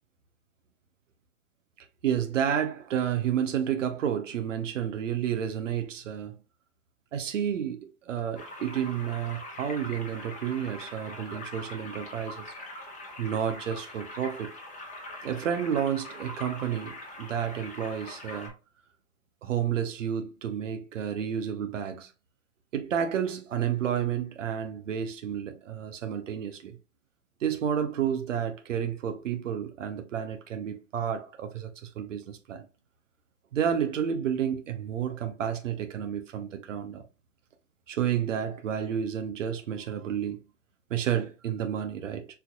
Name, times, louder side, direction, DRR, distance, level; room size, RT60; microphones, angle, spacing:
voice 1, 2.0-6.4 7.1-12.5 13.2-14.5 15.2-18.5 19.4-22.1 22.7-26.8 27.4-32.7 33.5-37.0 37.9-40.4 40.9-42.3, right 9 dB, 85° right, 0.7 m, -30 dB
sound 1, 8.3-18.5, left 1 dB, 20° left, 1.2 m, -43 dB
4.4 x 2.7 x 2.2 m
hypercardioid pair, 110°, 37 cm